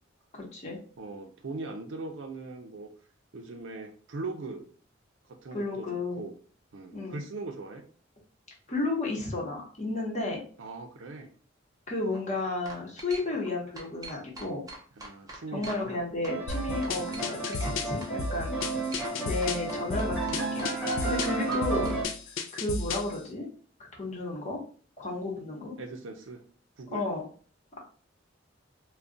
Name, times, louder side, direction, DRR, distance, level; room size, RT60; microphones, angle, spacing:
voice 1, 0.3-0.8 5.5-6.2 6.9-7.2 8.7-10.4 11.9-14.7 15.5-18.6 19.2-20.7 21.0-21.9 22.5-23.5 24.0-24.6 25.0-25.7 26.9-27.2, left 2 dB, 35° left, -2 dB, 0.9 m, -32 dB
voice 2, 1.0-2.9 3.3-4.7 5.3-6.4 6.7-7.8 10.6-11.3 15.0-15.9 18.4-18.7 21.2-21.8 25.8-26.4 26.8-27.0, right 3 dB, 75° right, 5 dB, 0.5 m, -40 dB
sound 1, 11.9-12.2 12.6-13.5 13.7-16.0 16.2-17.7 18.0-18.1 18.6-19.2 19.4-22.0, right 2 dB, 20° right, 0.6 m, -43 dB
sound 2, 16.3-22.0, right 2 dB, 10° left, 1.0 m, -32 dB
sound 3, 16.5-23.2, left 3 dB, 70° left, 0.4 m, -34 dB
2.3 x 2.2 x 3.7 m, 0.42 s
head